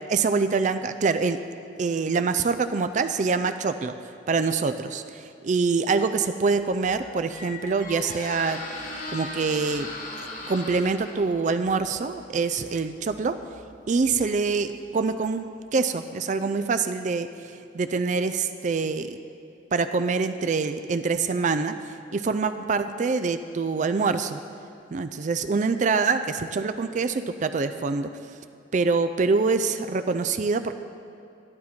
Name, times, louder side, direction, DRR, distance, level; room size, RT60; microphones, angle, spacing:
voice 1, 0.1-1.4 1.8-3.9 4.3-8.6 9.1-9.9 10.5-13.4 13.9-19.2 19.7-21.8 22.1-24.4 24.9-28.1 28.7-30.8, right 4 dB, 40° right, 9 dB, 0.4 m, -25 dB
Squeak, 6.5-15.3, left 2 dB, 45° left, 1.5 m, -40 dB
12.5 x 12.0 x 4.3 m, 2.6 s
head